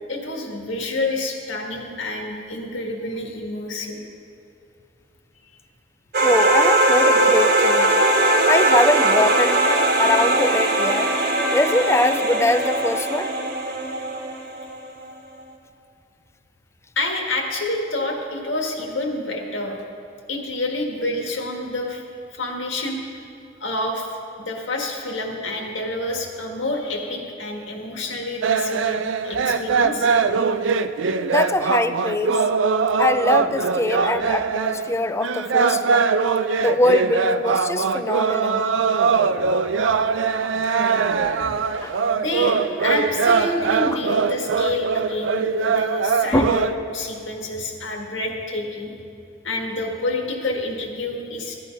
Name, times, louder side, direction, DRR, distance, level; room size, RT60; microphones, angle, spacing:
voice 1, 0.1-4.0 15.0-15.1 16.9-19.8 20.3-22.0 22.3-23.0 23.6-30.1 38.3-38.7 42.1-48.9 49.4-51.6, left 2 dB, 80° left, 1 dB, 1.7 m, -28 dB
sound 1, 6.1-14.7, right 1 dB, 55° right, 1.3 m, -19 dB
voice 2, 6.2-7.9 8.5-9.6 10.0-11.1 11.5-13.3 31.2-32.4 33.0-36.1 36.6-38.7 39.0-39.2 41.5-41.9 46.3-46.6, left 2 dB, 15° left, 11 dB, 0.4 m, -23 dB
sound 2, 28.4-46.7, right 5 dB, 80° right, 0.5 m, -21 dB
14.0 x 9.8 x 5.2 m, 2.6 s
head